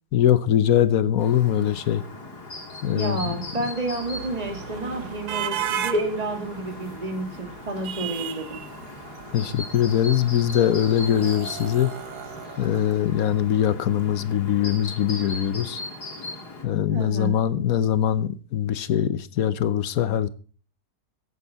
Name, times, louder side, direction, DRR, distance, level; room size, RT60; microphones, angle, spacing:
voice 1, 0.1-2.0 2.8-3.3 9.3-11.9 12.6-15.8 16.6-20.3, left 10 dB, 65° left, 1.3 m, -22 dB
Chirp tweet, 1.2-16.7, left 2 dB, 90° left, 3.3 m, -39 dB
voice 2, 2.9-8.6 16.9-17.5, right 2 dB, 25° right, 2.1 m, -30 dB
sound 1, 3.2-13.5, right 9 dB, 80° right, 1.4 m, -36 dB
15.0 x 8.3 x 5.6 m
omnidirectional pair, 1.7 m